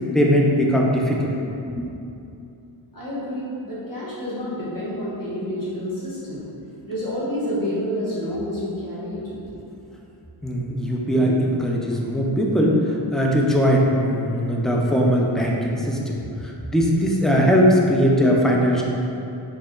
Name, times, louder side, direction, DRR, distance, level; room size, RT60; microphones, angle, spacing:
voice 1, 0.1-1.3 1.8-1.9 10.4-18.8, equal, ahead, -2 dB, 0.3 m, -20 dB
voice 2, 2.9-6.5 6.8-9.6, equal, 40° left, -11 dB, 1.3 m, -29 dB
4.1 x 2.9 x 2.3 m, 2.7 s
cardioid pair, 70°, 48 cm